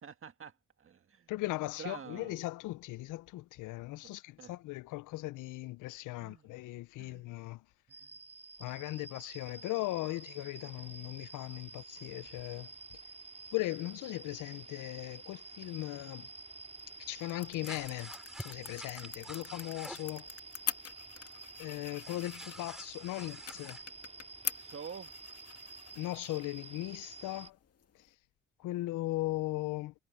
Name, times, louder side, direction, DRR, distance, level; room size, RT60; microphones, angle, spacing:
voice 1, 0.0-1.3 1.8-2.4 4.4-4.6 6.2-6.5 7.0-7.2 8.0-8.2 24.5-25.1, right 7 dB, 45° right, 1.8 m, -47 dB
voice 2, 1.3-7.6 8.6-12.7 13.5-16.3 17.0-18.1 18.4-20.3 21.6-23.8 26.0-27.6 28.6-29.9, left 18 dB, 85° left, 0.6 m, -38 dB
sound 1, 7.9-27.5, right 3 dB, 20° right, 5.5 m, -50 dB
sound 2, 16.6-28.2, left 8 dB, 50° left, 2.1 m, -46 dB
sound 3, 17.6-20.2 22.0-23.8, equal, ahead, 5.5 m, -49 dB
cardioid pair, 90°, 30 cm